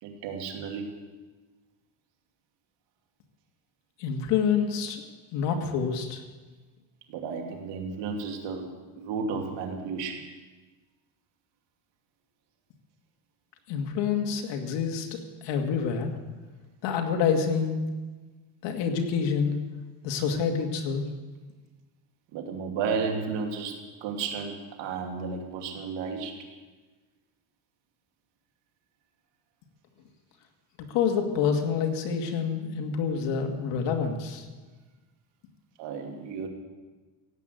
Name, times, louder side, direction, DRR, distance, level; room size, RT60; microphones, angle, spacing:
voice 1, 0.0-0.9 7.1-10.2 22.3-26.4 35.8-36.5, right 5 dB, 70° right, 3 dB, 2.8 m, -33 dB
voice 2, 4.0-5.0 5.3-6.2 13.7-16.1 16.8-17.8 18.6-19.6 20.0-21.0 30.9-34.5, left 6 dB, 70° left, 4 dB, 2.4 m, -27 dB
16.5 x 8.7 x 9.4 m, 1.3 s
cardioid pair, 140°, 44 cm